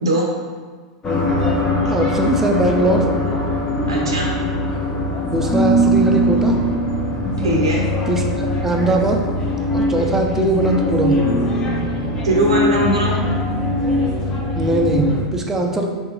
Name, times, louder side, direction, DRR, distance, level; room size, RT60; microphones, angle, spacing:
voice 1, 0.0-0.3 1.8-1.9 3.9-4.4 7.4-7.9 12.2-13.2, right 1 dB, 85° right, -2 dB, 0.8 m, -20 dB
sound 1, 1.0-15.2, left 1 dB, 30° left, 0.8 m, -21 dB
voice 2, 1.9-3.1 5.2-6.6 8.1-9.2 9.7-11.2 14.5-15.9, right 2 dB, 15° right, 2 dB, 0.5 m, -20 dB
3.7 x 3.4 x 3.0 m, 1.5 s
hypercardioid pair, 95°, 3 cm